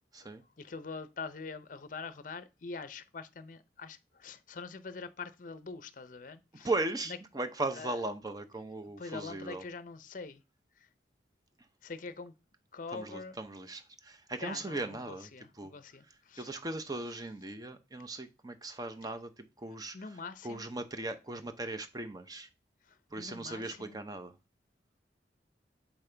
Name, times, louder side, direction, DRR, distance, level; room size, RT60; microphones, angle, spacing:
voice 1, 0.2-6.7 7.1-7.2 7.7-8.0 9.0-10.4 10.8-10.9 11.8-12.3 12.7-13.4 14.4-16.5 19.9-20.6 22.9-24.0, left 4 dB, 50° left, 0.6 m, -44 dB
voice 2, 6.6-9.6 12.9-15.3 15.6-15.7 16.4-20.0 20.4-22.5 23.1-24.3, right 2 dB, 20° right, 0.7 m, -38 dB
7.2 x 5.4 x 3.3 m
head